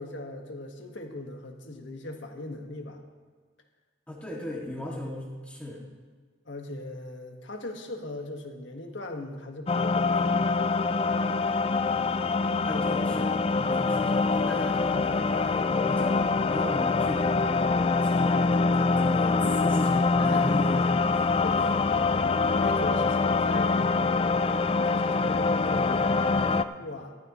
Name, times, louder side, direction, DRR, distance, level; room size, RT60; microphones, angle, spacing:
voice 1, 0.0-3.0 4.8-5.0 6.4-10.5 12.7-12.9 20.2-20.6 21.4-21.9 22.5-24.3 24.9-27.2, left 2 dB, 75° left, 3 dB, 1.5 m, -39 dB
voice 2, 4.1-5.8 12.7-21.2, left 1 dB, 5° left, -3 dB, 2.2 m, -37 dB
sound 1, 9.7-26.6, left 4 dB, 30° left, 0.3 m, -24 dB
15.5 x 14.0 x 3.1 m, 1.5 s
head